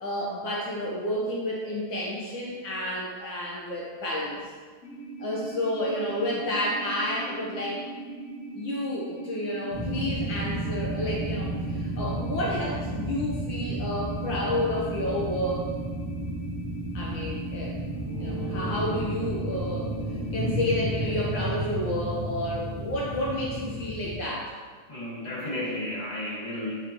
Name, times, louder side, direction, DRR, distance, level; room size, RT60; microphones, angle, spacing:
voice 1, 0.0-4.4 5.2-7.8 8.5-15.6 16.9-17.7 18.2-19.9 20.3-24.5, left 1 dB, 70° left, -4 dB, 1.8 m, -30 dB
sound 1, 4.8-21.1, right 3 dB, 40° left, 2.0 m, -40 dB
sound 2, 9.7-24.2, right 1 dB, 40° right, 0.5 m, -32 dB
voice 2, 24.9-26.7, left 1 dB, 20° left, -8 dB, 2.4 m, -33 dB
7.9 x 7.4 x 3.0 m, 1.5 s
omnidirectional pair, 2.2 m